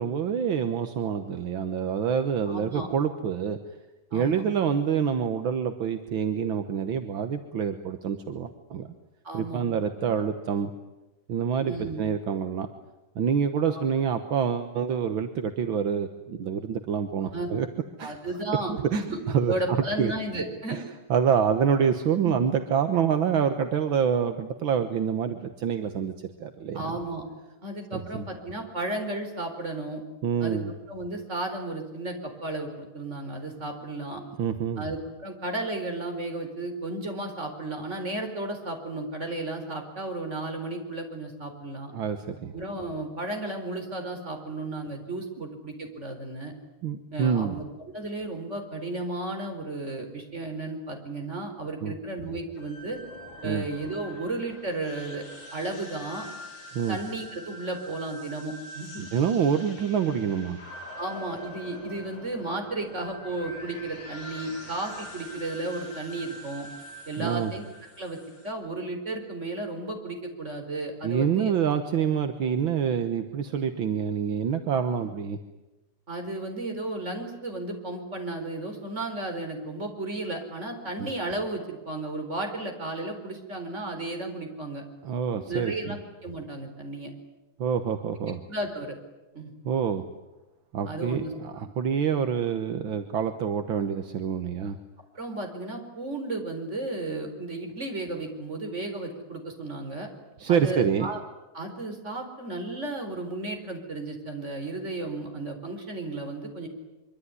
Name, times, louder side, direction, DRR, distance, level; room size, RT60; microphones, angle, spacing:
voice 1, 0.0-3.6 4.1-8.9 9.3-10.7 11.3-12.7 13.2-17.7 18.0-18.2 18.7-19.5 20.0-20.1 20.7-20.8 21.1-26.1 26.4-27.0 27.9-28.2 30.2-30.7 34.4-34.8 41.9-42.5 46.8-47.6 51.8-51.9 53.4-53.7 56.7-57.0 59.0-60.6 67.2-67.5 71.0-75.4 81.0-81.1 85.0-86.0 87.6-88.4 89.6-90.0 90.7-94.8 100.4-101.1, right 7 dB, 70° right, 8 dB, 2.0 m, -27 dB
voice 2, 2.5-2.9 4.1-4.4 9.2-9.6 10.1-10.2 11.6-12.0 13.7-13.8 17.3-17.5 18.0-20.8 22.2-22.4 26.7-27.2 27.6-30.0 30.4-30.6 30.9-34.2 34.8-41.9 42.5-46.5 47.1-47.6 47.9-53.0 53.4-55.3 55.5-56.3 56.9-59.1 61.0-66.7 67.1-67.6 68.0-68.2 68.4-71.5 74.7-75.1 76.1-84.8 85.5-87.1 88.5-89.0 89.3-89.5 90.8-91.3 95.1-100.1 100.5-101.2 101.5-106.7, right 2 dB, 35° right, 4 dB, 4.7 m, -34 dB
sound 1, 52.5-68.5, equal, 75° left, 5.7 m, -44 dB
25.0 x 24.0 x 9.7 m, 1.0 s
omnidirectional pair, 2.3 m